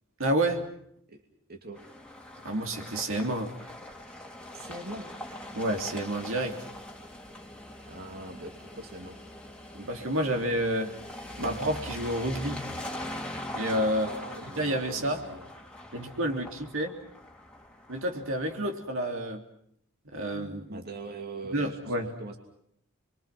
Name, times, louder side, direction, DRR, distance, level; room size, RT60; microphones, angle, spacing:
voice 1, 0.2-0.6 2.4-3.5 5.5-6.6 9.7-10.9 11.4-12.6 13.5-14.1 14.6-15.2 15.9-16.9 17.9-19.4 20.1-20.8 21.5-22.1, right 1 dB, 65° right, 3 dB, 3.3 m, -29 dB
sound 1, 1.8-18.7, left 1 dB, 5° left, 2.8 m, -42 dB
voice 2, 4.5-5.1 7.8-9.2 14.1-15.5 20.7-21.9 22.2-22.4, right 2 dB, 45° right, 3 dB, 2.9 m, -42 dB
30.0 x 23.5 x 6.1 m, 0.70 s
head